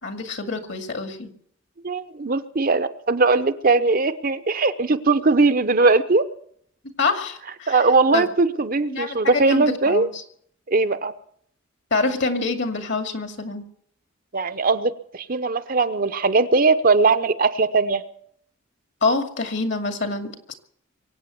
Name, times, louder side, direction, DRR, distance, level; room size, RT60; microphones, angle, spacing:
voice 1, 0.0-1.3 7.0-7.8 8.1-8.3 8.9-10.1 11.9-13.7 19.0-20.5, left 3 dB, 60° left, 6 dB, 2.3 m, -26 dB
voice 2, 1.8-6.3 7.7-10.1 10.7-11.1 14.3-18.0, right 3 dB, 45° right, 11 dB, 0.8 m, -20 dB
23.5 x 8.7 x 7.0 m, 0.65 s
head